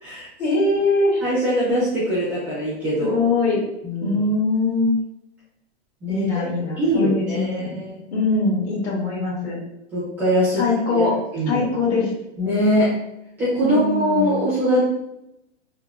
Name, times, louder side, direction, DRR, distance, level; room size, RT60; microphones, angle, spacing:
voice 1, 0.4-1.2 3.1-3.6 4.0-4.9 6.1-7.8 8.1-9.6 10.6-11.1 11.5-12.1 13.6-14.4, left 3 dB, 75° left, -4 dB, 1.4 m, -22 dB
voice 2, 1.2-3.2 3.8-4.2 6.0-6.5 6.8-7.9 9.9-10.6 10.9-11.0 11.3-11.6 12.4-12.9 13.4-14.8, equal, 5° right, -11 dB, 0.4 m, -22 dB
3.2 x 2.0 x 2.4 m, 0.84 s
supercardioid pair, 165°, 34 cm